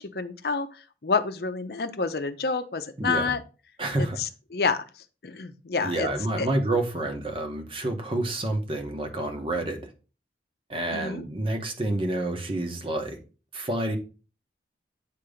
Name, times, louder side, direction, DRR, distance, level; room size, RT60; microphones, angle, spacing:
voice 1, 0.0-3.4 4.0-4.8 5.2-6.1 6.4-6.5 10.9-11.2, left 4 dB, 60° left, 0.7 m, -28 dB
voice 2, 3.0-3.3 3.8-4.2 5.8-9.9 10.7-13.2 13.5-14.0, right 1 dB, 30° right, 1.0 m, -28 dB
8.5 x 3.0 x 5.0 m
head